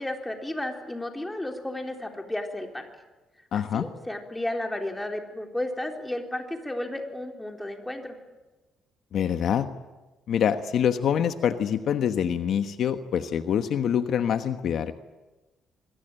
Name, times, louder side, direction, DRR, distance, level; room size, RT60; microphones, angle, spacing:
voice 1, 0.0-2.9 3.5-8.2, left 1 dB, 10° left, 3 dB, 3.8 m, -33 dB
voice 2, 3.5-3.8 9.1-9.7 10.3-14.9, left 8 dB, 65° left, 8 dB, 1.3 m, -25 dB
26.5 x 22.5 x 9.1 m, 1.2 s
cardioid pair, 120°, 0 cm